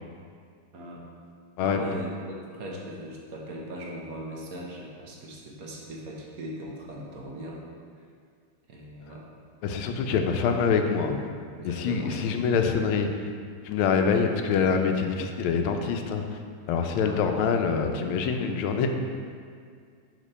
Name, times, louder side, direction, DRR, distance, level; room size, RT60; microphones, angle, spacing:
voice 1, 0.7-1.0 1.6-7.6 8.7-9.2 11.5-12.4 17.0-17.2, right 1 dB, 55° right, -2 dB, 1.1 m, -39 dB
voice 2, 9.6-11.2 11.6-13.3 13.6-16.4 16.7-18.9, left 6 dB, 85° left, 5 dB, 1.4 m, -25 dB
5.0 x 4.2 x 5.4 m, 2.1 s
omnidirectional pair, 2.3 m